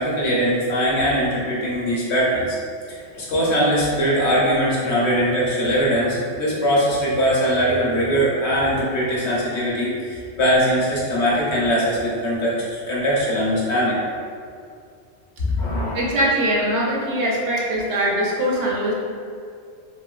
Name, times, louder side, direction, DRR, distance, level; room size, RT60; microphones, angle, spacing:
voice 1, 0.0-2.6 2.9-14.0 15.4-16.0, equal, 65° left, -6 dB, 1.0 m, -21 dB
voice 2, 15.9-18.9, right 1 dB, 70° right, -3 dB, 0.8 m, -22 dB
2.9 x 2.9 x 2.3 m, 2.3 s
omnidirectional pair, 1.3 m